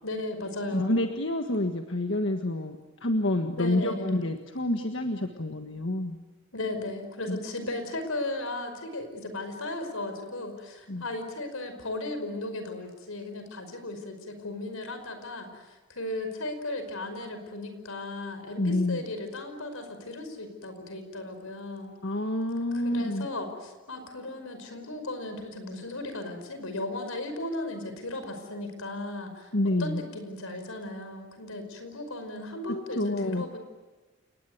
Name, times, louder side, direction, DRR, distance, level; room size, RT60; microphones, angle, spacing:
voice 1, 0.0-1.0 3.6-4.2 6.5-21.9 22.7-29.5 29.8-33.6, left 2 dB, 85° left, 8 dB, 5.4 m, -36 dB
voice 2, 0.7-6.2 7.3-7.4 10.9-11.0 18.6-19.0 22.0-23.3 29.5-30.0 32.9-33.4, left 1 dB, 60° left, 5 dB, 1.6 m, -28 dB
29.5 x 19.5 x 9.4 m, 1.2 s
head